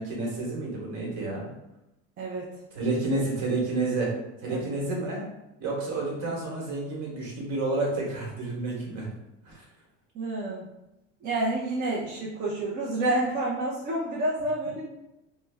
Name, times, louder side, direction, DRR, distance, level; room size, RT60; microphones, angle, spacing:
voice 1, 0.0-1.5 2.7-4.1 4.4-5.2 5.6-9.1 9.4-9.6, right 2 dB, 50° right, -2 dB, 1.2 m, -30 dB
voice 2, 2.2-2.5 4.5-4.6 10.1-10.6 11.2-14.8, right 2 dB, 30° right, -4 dB, 0.4 m, -29 dB
3.2 x 2.1 x 3.3 m, 0.92 s
cardioid pair, 150°, 34 cm